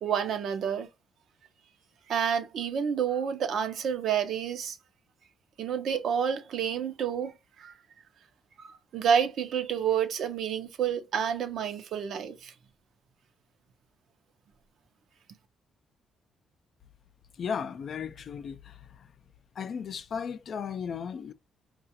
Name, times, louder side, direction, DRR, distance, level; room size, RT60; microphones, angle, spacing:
voice 1, 0.0-0.9 2.1-4.8 5.6-7.3 7.6-7.7 8.6-12.5, right 8 dB, 70° right, 0.7 m, -29 dB
voice 2, 17.4-18.8 19.6-21.3, left 7 dB, 55° left, 0.4 m, -35 dB
4.7 x 2.4 x 2.7 m
cardioid pair, 90°, 0 cm